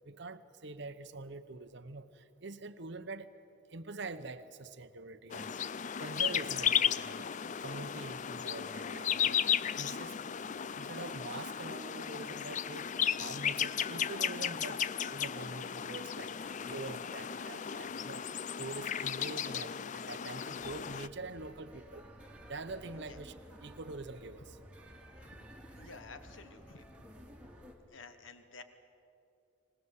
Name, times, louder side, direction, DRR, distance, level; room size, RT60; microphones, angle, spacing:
voice 1, 0.0-3.3 3.7-5.5 6.0-7.3 7.6-9.4 9.8-10.2 10.7-14.8 15.1-18.2 18.6-22.1 22.5-24.6, right 3 dB, 65° right, 9 dB, 0.9 m, -45 dB
sound 1, 5.3-21.1, left 8 dB, 40° left, 0.4 m, -35 dB
sound 2, 20.6-27.7, equal, 5° right, 2.7 m, -53 dB
voice 2, 25.7-26.9 27.9-28.6, left 4 dB, 85° left, 9 dB, 1.3 m, -52 dB
25.0 x 19.0 x 8.2 m, 2.7 s
head